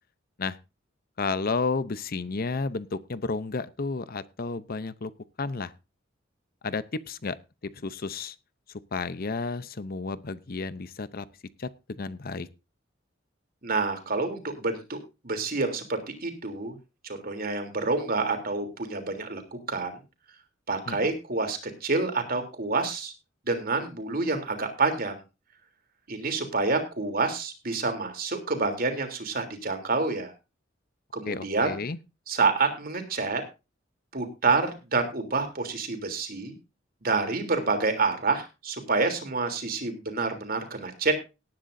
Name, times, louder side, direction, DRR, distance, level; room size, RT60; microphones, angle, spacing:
voice 1, 1.2-5.1 5.4-5.7 6.6-7.4 7.6-8.4 8.9-11.3 11.6-12.5 20.9-21.1 31.2-32.0, left 4 dB, 50° left, 15 dB, 0.7 m, -32 dB
voice 2, 13.6-16.8 17.0-19.9 20.7-23.1 23.5-25.1 26.1-30.3 31.1-31.8 32.3-33.4 34.1-36.5 37.0-41.1, right 3 dB, 50° right, 6 dB, 3.3 m, -28 dB
18.5 x 10.5 x 2.7 m, 0.28 s
head